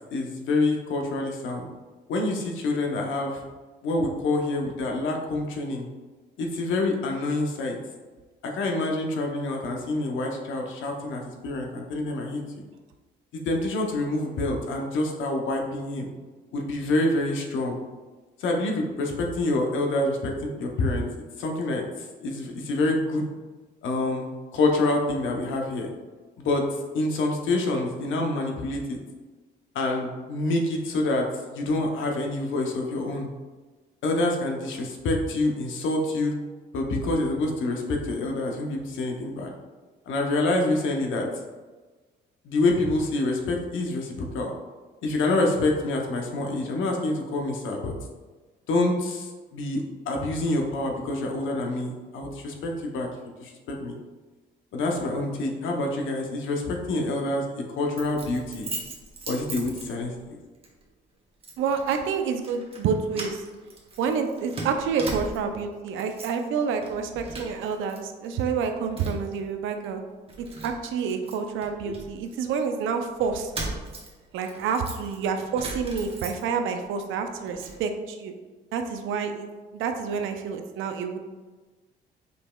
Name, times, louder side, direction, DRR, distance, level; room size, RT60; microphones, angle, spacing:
voice 1, 0.1-1.7 2.1-3.4 3.8-5.9 6.4-7.8 8.4-12.4 13.3-16.1 16.5-17.8 18.4-21.1 21.4-21.8 22.2-23.3 23.8-25.9 26.4-29.0 29.7-31.3 31.5-33.3 34.0-36.3 36.7-39.5 40.1-41.3 42.4-44.5 45.0-47.9 48.7-53.1 53.4-54.0 54.7-58.7 59.3-60.4 71.8-71.9, left 2 dB, 80° left, 1 dB, 0.7 m, -27 dB
Keys jangling, 58.0-60.3 60.6-60.8 61.4-62.0 62.4-62.8 63.1-65.6 65.9-66.5 66.8-68.0 68.2-69.4 69.8-69.9 70.3-72.6 73.2-76.8 77.1-77.8, right 2 dB, 30° right, 0.9 m, -39 dB
voice 2, 61.6-63.4 64.0-70.0 70.4-73.5 74.3-78.3 78.7-79.5 79.7-81.2, right 6 dB, 90° right, 6 dB, 0.5 m, -28 dB
5.3 x 3.0 x 2.2 m, 1.3 s
cardioid pair, 90°, 20 cm